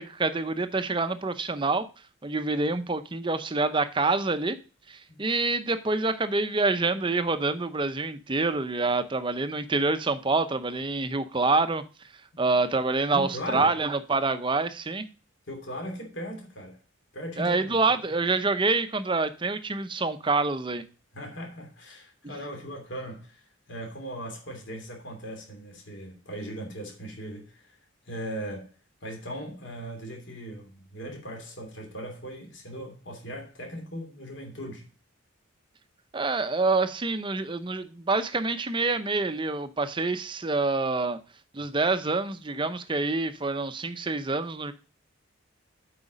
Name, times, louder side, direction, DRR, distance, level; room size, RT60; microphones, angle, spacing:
voice 1, 0.0-4.6 4.9-15.1 17.4-20.8 36.1-41.2 41.5-44.7, right 3 dB, 25° right, 0.6 m, -27 dB
voice 2, 13.1-13.7 15.5-16.8 17.1-17.8 21.1-23.4 23.7-27.8 28.1-28.7 29.0-34.9, equal, 60° left, 2.8 m, -38 dB
8.1 x 4.9 x 5.0 m
head